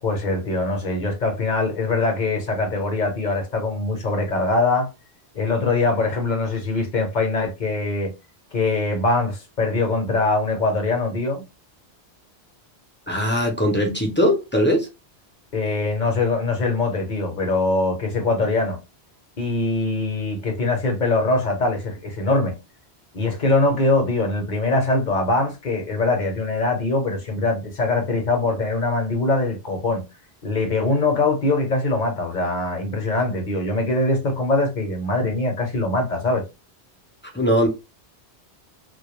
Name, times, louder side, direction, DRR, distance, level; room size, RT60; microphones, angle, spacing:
voice 1, 0.0-4.9 5.3-8.1 8.5-11.4 15.5-18.8 19.4-22.5 23.1-30.0 30.4-36.4, left 2 dB, 50° left, 0.7 m, -22 dB
voice 2, 13.1-14.9 37.3-37.7, equal, 15° left, 0.3 m, -20 dB
2.2 x 2.2 x 2.9 m
omnidirectional pair, 1.1 m